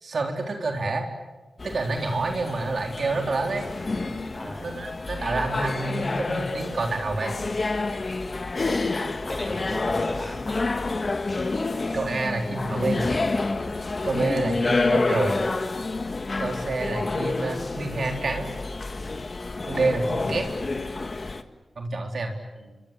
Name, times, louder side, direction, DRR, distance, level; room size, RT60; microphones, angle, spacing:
voice 1, 0.0-1.1 1.6-3.7 4.6-7.3 11.9-13.1 14.0-15.4 16.4-18.5 19.6-20.5 21.8-22.3, right 3 dB, 65° right, 3 dB, 3.6 m, -28 dB
sound 1, 1.6-21.4, left 3 dB, 50° left, 1.7 m, -28 dB
voice 2, 4.3-4.7 7.1-7.4 9.3-10.8 22.6-22.8, equal, 10° left, 4 dB, 7.2 m, -37 dB
27.5 x 23.0 x 8.3 m, 1.2 s
cardioid pair, 45°, 0 cm